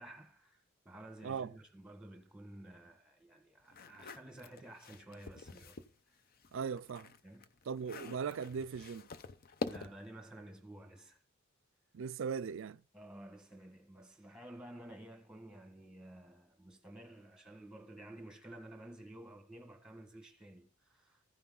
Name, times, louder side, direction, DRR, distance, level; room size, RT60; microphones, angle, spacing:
voice 1, 0.0-5.8 6.1-6.2 7.2-7.5 9.6-11.2 12.9-21.2, right 1 dB, 5° right, 1.6 m, -52 dB
sound 1, 3.7-5.9 6.3-10.1, left 3 dB, 45° left, 0.6 m, -46 dB
voice 2, 6.5-7.1 7.7-9.1 11.9-12.8, right 6 dB, 65° right, 0.4 m, -39 dB
15.0 x 5.9 x 3.9 m
head